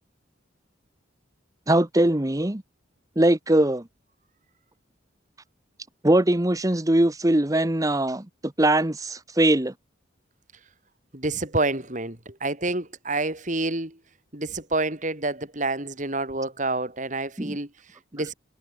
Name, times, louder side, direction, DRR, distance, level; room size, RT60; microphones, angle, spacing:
voice 1, 1.7-2.6 3.2-3.9 6.0-8.3 8.6-9.7 17.4-17.6, right 1 dB, 20° right, 1.0 m, -21 dB
voice 2, 11.1-14.0 14.3-18.3, right 2 dB, 40° right, 4.0 m, -28 dB
head